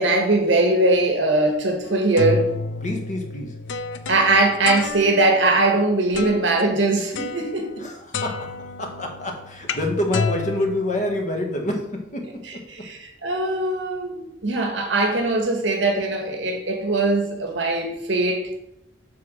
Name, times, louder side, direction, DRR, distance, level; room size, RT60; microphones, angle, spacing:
voice 1, 0.0-2.5 4.1-7.7 12.4-18.5, right 2 dB, 80° right, 3 dB, 1.2 m, -21 dB
sound 1, 1.9-5.4 6.1-6.6 7.2-7.9 8.1-11.6, left 4 dB, 80° left, 0.6 m, -31 dB
voice 2, 2.8-3.5 7.8-8.5 8.8-12.6, left 1 dB, 40° left, 2 dB, 1.4 m, -27 dB
7.7 x 3.6 x 6.2 m, 0.85 s
head